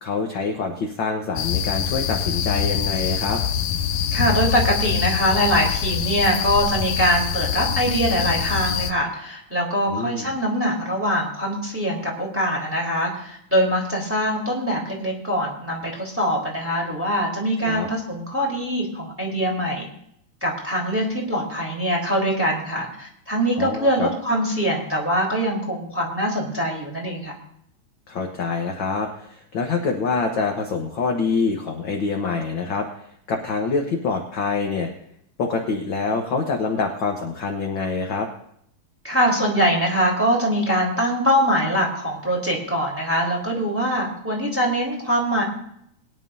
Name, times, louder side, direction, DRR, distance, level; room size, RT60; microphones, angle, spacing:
voice 1, 0.0-3.4 9.9-10.3 17.6-17.9 23.6-24.1 28.1-32.9 33.3-34.9 35.4-38.3, left 4 dB, 50° left, 2 dB, 1.7 m, -25 dB
sound 1, 1.4-8.9, left 8 dB, 80° left, 2.2 m, -24 dB
voice 2, 4.1-19.9 20.4-27.3 39.0-45.4, equal, 5° right, -3 dB, 3.7 m, -23 dB
22.5 x 11.0 x 2.7 m, 0.72 s
omnidirectional pair, 3.3 m